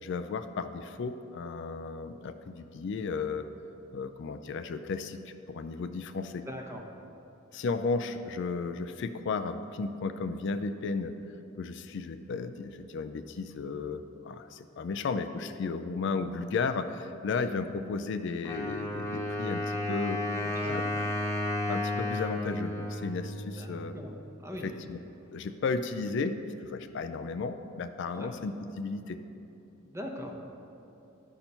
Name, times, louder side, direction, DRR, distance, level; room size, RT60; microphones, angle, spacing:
voice 1, 0.0-3.5 3.9-5.2 5.5-6.5 7.5-11.1 11.6-20.2 20.6-20.9 21.7-23.9 24.6-25.0 25.3-29.2, left 4 dB, 60° left, 9 dB, 0.4 m, -34 dB
voice 2, 6.5-6.8 20.6-20.8 23.6-24.1 24.4-24.7 28.1-28.3 29.9-30.4, left 1 dB, 15° right, 1 dB, 0.8 m, -40 dB
Wind instrument woodwind instrument, 18.4-24.1, left 1 dB, 15° left, 1.0 m, -33 dB
11.5 x 4.4 x 5.4 m, 2.9 s
head